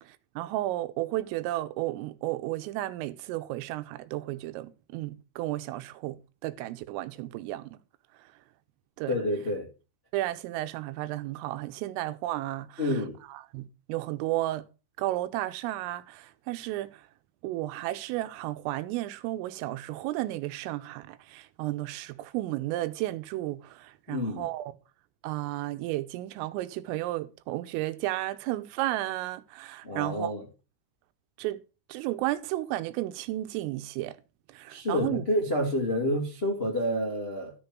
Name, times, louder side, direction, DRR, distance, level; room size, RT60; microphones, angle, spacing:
voice 1, 0.0-7.8 9.0-9.1 10.1-13.0 13.3-14.7 15.0-17.0 17.4-24.7 25.2-30.3 31.4-31.6 31.9-34.2 34.5-35.2, right 16 dB, 85° right, 3.5 m, -33 dB
voice 2, 9.1-9.7 12.8-13.2 24.1-24.5 29.8-30.4 34.7-37.5, equal, 70° left, 0.5 m, -28 dB
13.5 x 6.8 x 6.0 m
omnidirectional pair, 5.8 m